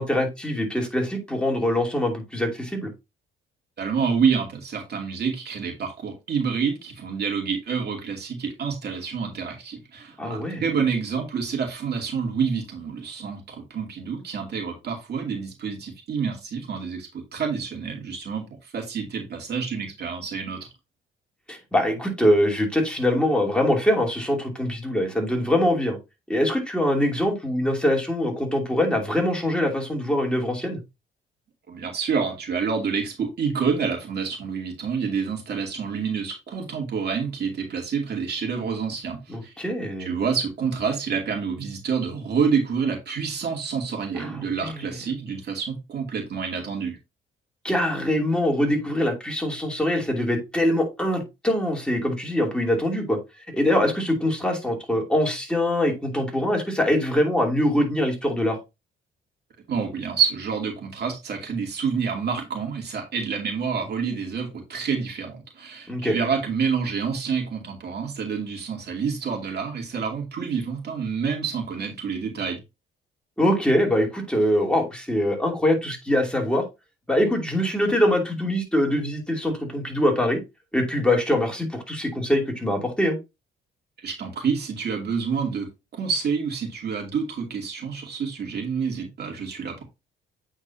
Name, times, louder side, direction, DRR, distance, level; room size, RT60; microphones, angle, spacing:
voice 1, 0.0-2.9 10.2-10.6 21.5-26.0 26.3-30.8 39.3-40.1 44.2-44.7 47.6-58.6 65.9-66.2 73.4-76.6 77.1-80.4 80.7-83.2, left 1 dB, 5° left, 2.8 m, -23 dB
voice 2, 3.8-20.7 31.7-39.5 40.0-47.0 59.7-72.6 84.0-89.8, right 6 dB, 55° right, 2.5 m, -28 dB
8.6 x 4.4 x 2.7 m
cardioid pair, 90°, 20 cm